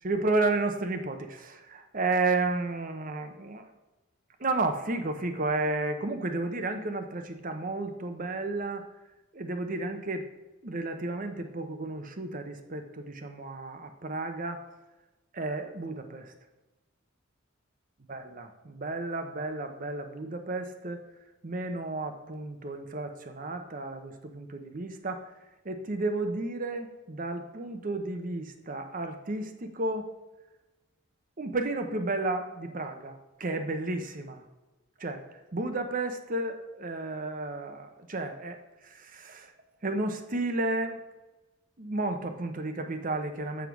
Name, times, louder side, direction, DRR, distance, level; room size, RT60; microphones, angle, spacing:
voice 1, 0.0-3.7 4.4-8.8 9.3-10.3 10.6-14.6 15.3-16.3 18.1-21.0 21.4-25.3 25.6-30.1 31.4-34.4 35.0-35.2 35.5-39.5 39.8-41.0 41.8-43.7, right 2 dB, 40° right, 7 dB, 0.8 m, -32 dB
7.6 x 7.2 x 4.7 m, 1.1 s
head